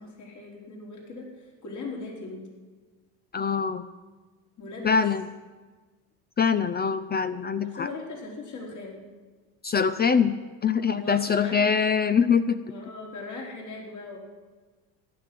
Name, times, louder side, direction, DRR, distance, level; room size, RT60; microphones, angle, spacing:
voice 1, 0.0-2.5 4.6-5.0 7.6-9.0 10.8-11.9 12.7-14.2, left 3 dB, 50° left, -1 dB, 4.5 m, -39 dB
voice 2, 3.3-3.8 4.8-5.3 6.4-7.9 9.6-10.4 10.6-12.6, left 6 dB, 25° left, 12 dB, 0.6 m, -23 dB
13.5 x 10.5 x 7.7 m, 1.4 s
supercardioid pair, 100°, 39 cm